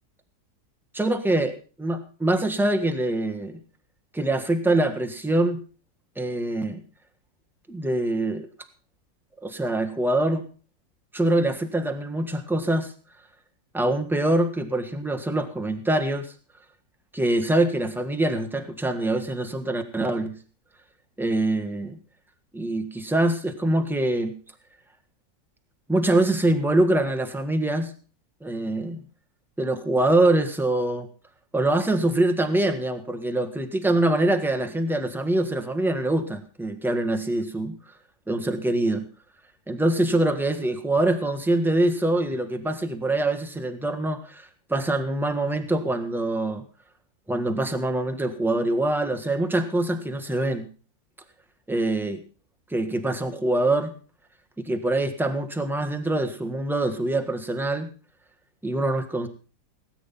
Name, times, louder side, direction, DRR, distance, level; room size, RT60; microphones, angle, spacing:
voice 1, 0.9-3.6 4.1-5.6 6.2-6.8 7.7-8.5 9.4-10.5 11.1-12.9 13.7-16.3 17.1-20.3 21.2-22.0 22.5-24.3 25.9-27.9 28.4-29.0 29.6-31.1 31.5-37.7 38.3-39.0 39.7-46.6 47.3-50.7 51.7-52.2 52.7-53.9 54.6-57.9 58.6-59.3, right 1 dB, ahead, 6 dB, 1.4 m, -24 dB
18.0 x 9.4 x 5.6 m, 0.36 s
omnidirectional pair, 1.8 m